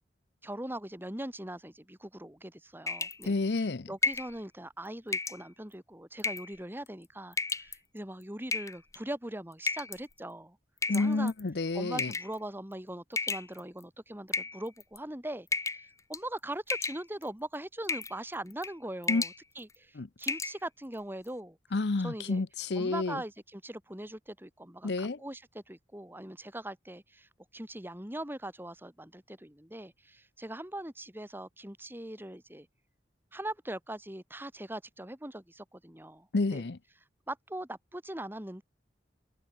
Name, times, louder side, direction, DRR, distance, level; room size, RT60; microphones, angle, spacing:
voice 1, 0.4-10.6 10.9-11.3 11.7-21.6 22.0-22.4 22.7-32.7 33.3-36.6 37.3-38.6, right 1 dB, 10° right, 3.1 m, -41 dB
sound 1, 2.9-3.3 4.0-4.3 5.1-5.4 6.2-6.6 7.3-7.8 8.5-9.0 9.7-10.0 10.8-11.4 12.0-12.3 13.2-13.8 14.3-15.0 15.5-15.9 16.1-16.4 16.7-17.3 17.9-18.2 18.5-18.7 19.0-19.4 19.7-19.8 20.2-20.6, left 3 dB, 20° left, 1.3 m, -32 dB
voice 2, 3.2-3.9 10.9-12.1 19.1-19.2 20.0-20.1 21.7-23.2 24.8-25.2 36.3-36.8, left 3 dB, 65° left, 0.7 m, -29 dB
head